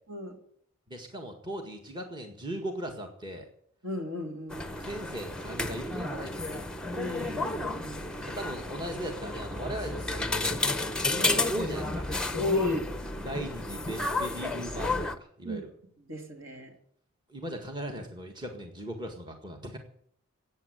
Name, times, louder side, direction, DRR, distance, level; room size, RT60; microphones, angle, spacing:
voice 1, 0.9-3.5 4.7-6.6 8.2-10.6 11.1-12.1 13.2-15.7 17.3-19.8, right 1 dB, 20° right, 3 dB, 1.7 m, -38 dB
voice 2, 3.8-4.7 6.9-8.3 12.3-12.8 15.4-15.6 16.0-16.7, left 2 dB, 65° right, 4 dB, 3.0 m, -34 dB
sound 1, 4.5-15.2, left 2 dB, 5° left, 0.7 m, -32 dB
15.0 x 9.0 x 9.2 m, 0.66 s
head